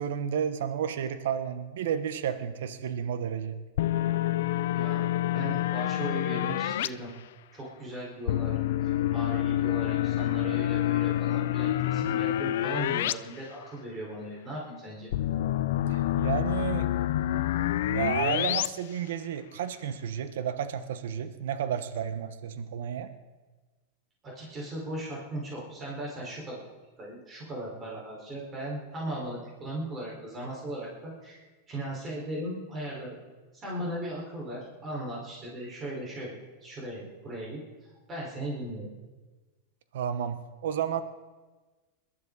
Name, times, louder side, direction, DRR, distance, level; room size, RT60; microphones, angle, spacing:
voice 1, 0.0-3.6 15.9-16.9 17.9-23.1 39.9-41.0, right 8 dB, 75° right, 11 dB, 1.0 m, -32 dB
sound 1, 3.8-6.9 8.3-13.1 13.5-13.6 15.1-18.7, left 13 dB, 75° left, 0.4 m, -27 dB
voice 2, 5.3-7.1 7.5-15.1 24.2-26.6 27.0-33.2 33.5-38.9, right 1 dB, 25° right, -4 dB, 4.7 m, -38 dB
21.5 x 12.5 x 4.1 m, 1.3 s
hypercardioid pair, 125°, 0 cm